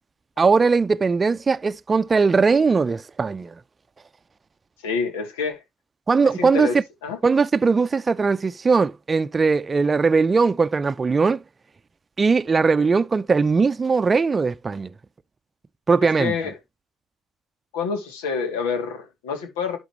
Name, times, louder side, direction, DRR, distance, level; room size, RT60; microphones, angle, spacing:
voice 1, 0.4-3.5 6.1-6.8 7.2-11.4 12.2-14.9 15.9-16.3, right 4 dB, 30° right, 0.5 m, -20 dB
voice 2, 4.8-5.6 6.4-6.7 7.0-7.2 16.2-16.5 17.7-19.8, left 5 dB, 90° left, 2.6 m, -27 dB
11.5 x 6.2 x 3.1 m
hypercardioid pair, 65°, 0 cm